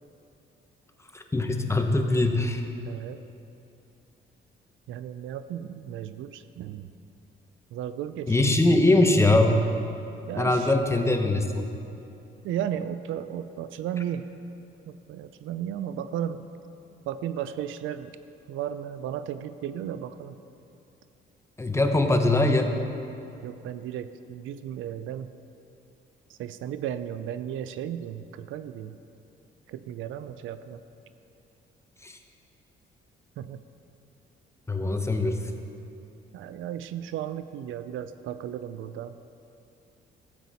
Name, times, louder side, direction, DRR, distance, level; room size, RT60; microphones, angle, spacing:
voice 1, 1.1-2.6 8.3-9.6 10.4-11.7 21.6-22.7 32.0-32.2 34.7-35.5, left 2 dB, 15° left, 4 dB, 0.9 m, -22 dB
voice 2, 2.9-3.2 4.9-6.9 7.7-8.6 10.3-10.7 12.4-14.3 14.9-16.4 17.1-18.2 18.5-20.4 23.4-25.3 26.3-29.0 29.7-30.8 33.4-33.6 36.3-39.1, right 10 dB, 80° right, 12 dB, 0.5 m, -34 dB
13.0 x 8.1 x 4.1 m, 2.8 s
cardioid pair, 90°, 20 cm